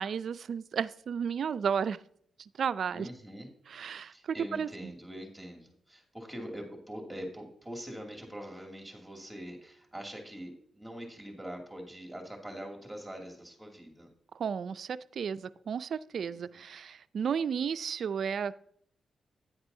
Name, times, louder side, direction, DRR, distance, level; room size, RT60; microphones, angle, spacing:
voice 1, 0.0-2.0 2.6-3.1 3.7-4.1 4.5-4.7 14.4-18.6, right 7 dB, 70° right, 14 dB, 0.4 m, -33 dB
voice 2, 2.8-3.5 4.1-14.1 16.2-16.6, equal, 5° right, 1 dB, 2.6 m, -43 dB
9.9 x 9.4 x 2.7 m, 0.64 s
cardioid pair, 60°, 0 cm